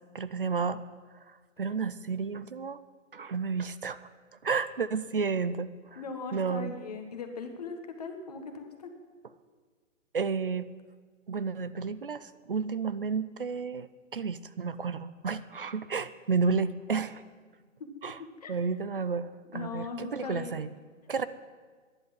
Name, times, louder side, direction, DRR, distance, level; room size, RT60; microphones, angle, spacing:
voice 1, 0.1-0.8 1.6-2.8 3.1-4.0 4.4-6.0 6.3-6.7 10.1-10.7 11.3-17.2 18.0-18.2 18.5-20.7 21.1-21.2, right 5 dB, 45° right, 15 dB, 0.5 m, -31 dB
voice 2, 5.9-8.9 18.2-18.5 19.5-20.6, left 4 dB, 30° left, 5 dB, 1.5 m, -39 dB
12.0 x 11.0 x 9.4 m, 1.5 s
hypercardioid pair, 180°, 39 cm